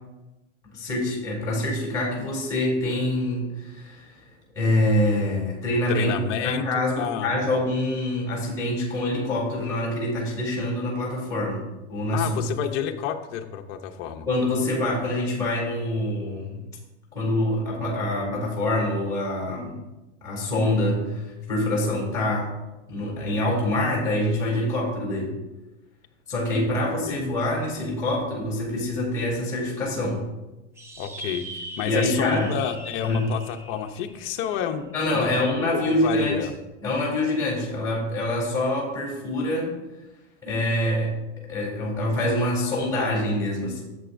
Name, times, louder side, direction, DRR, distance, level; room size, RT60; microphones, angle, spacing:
voice 1, 0.7-4.2 4.5-6.1 6.4-12.5 14.3-16.6 17.1-19.8 20.2-22.5 22.9-25.3 26.3-30.2 31.8-32.5 33.0-33.2 34.9-36.5 36.8-39.8 40.4-43.8, left 1 dB, 10° left, -4 dB, 2.9 m, -25 dB
voice 2, 5.9-7.4 12.1-14.3 26.6-27.2 31.0-34.8 35.1-35.3 35.6-36.5, left 8 dB, 35° left, 5 dB, 0.7 m, -30 dB
sound 1, 30.8-35.5, right 2 dB, 10° right, 0.3 m, -41 dB
11.0 x 7.7 x 2.6 m, 1.0 s
supercardioid pair, 145°, 36 cm